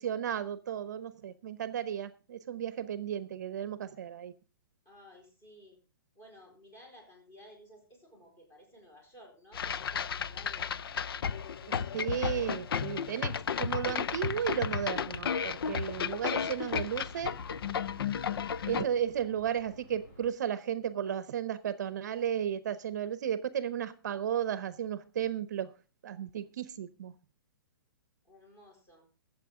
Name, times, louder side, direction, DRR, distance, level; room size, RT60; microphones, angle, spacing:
voice 1, 0.0-4.3 11.7-17.4 18.7-25.7 26.0-27.1, right 9 dB, 50° right, 14 dB, 0.8 m, -34 dB
voice 2, 4.8-5.8 6.1-10.8 28.2-29.1, equal, 20° left, 1 dB, 4.7 m, -55 dB
sound 1, 9.5-18.9, left 7 dB, 80° left, 0.5 m, -33 dB
sound 2, 10.0-20.3, equal, 40° left, 4.6 m, -56 dB
22.0 x 7.6 x 3.7 m, 0.34 s
hypercardioid pair, 175°, 12 cm